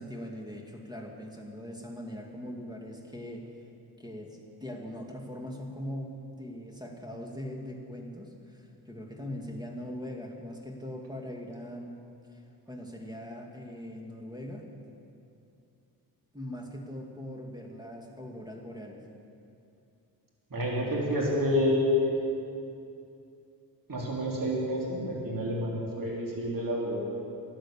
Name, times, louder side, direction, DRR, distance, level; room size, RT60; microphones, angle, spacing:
voice 1, 0.0-3.5 4.0-12.0 12.3-12.4 12.7-14.6 16.3-19.0, equal, 10° right, 1 dB, 2.3 m, -41 dB
voice 2, 20.5-22.2 23.9-27.0, left 1 dB, 50° right, -3 dB, 3.6 m, -28 dB
12.5 x 9.3 x 7.1 m, 2.6 s
supercardioid pair, 55°, 42 cm